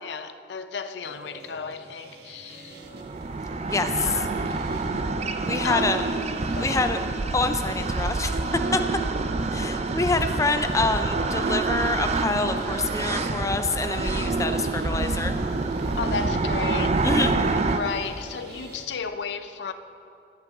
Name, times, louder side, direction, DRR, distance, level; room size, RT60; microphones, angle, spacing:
voice 1, 0.0-2.8 4.0-4.5 5.6-6.0 6.5-6.9 16.0-17.0 17.7-19.7, left 5 dB, 70° left, 0.5 m, -33 dB
sound 1, 1.0-18.9, right 2 dB, 65° right, 1.2 m, -45 dB
sound 2, 2.9-17.8, right 3 dB, 40° right, 0.5 m, -27 dB
voice 2, 3.7-4.2 5.5-6.1 6.6-7.0 7.3-8.3 8.7-8.8 9.5-15.3 17.0-17.3, left 3 dB, 20° left, 0.4 m, -26 dB
13.0 x 11.5 x 3.5 m
head